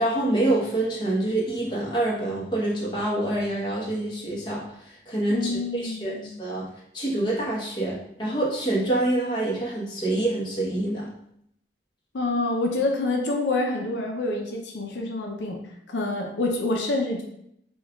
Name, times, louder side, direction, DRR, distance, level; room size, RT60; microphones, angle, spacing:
voice 1, 0.0-6.7 6.9-11.1, right 1 dB, 25° left, -5 dB, 0.9 m, -26 dB
voice 2, 5.3-6.3 12.1-15.6 15.9-17.2, left 2 dB, 85° left, 1 dB, 0.5 m, -27 dB
5.2 x 2.3 x 2.3 m, 0.74 s
head